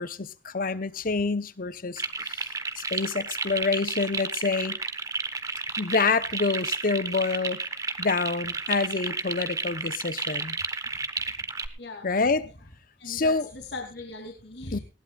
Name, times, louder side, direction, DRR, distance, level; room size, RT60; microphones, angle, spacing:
voice 1, 0.0-2.5 2.8-4.8 5.8-7.6 8.0-10.6 12.0-12.5 13.0-13.5 14.7-14.8, left 4 dB, 50° left, 0.9 m, -27 dB
sound 1, 2.0-11.7, right 4 dB, 20° right, 1.1 m, -32 dB
voice 2, 11.8-12.1 12.4-12.5 13.0-14.8, left 2 dB, 65° left, 2.8 m, -39 dB
19.5 x 16.0 x 2.4 m
head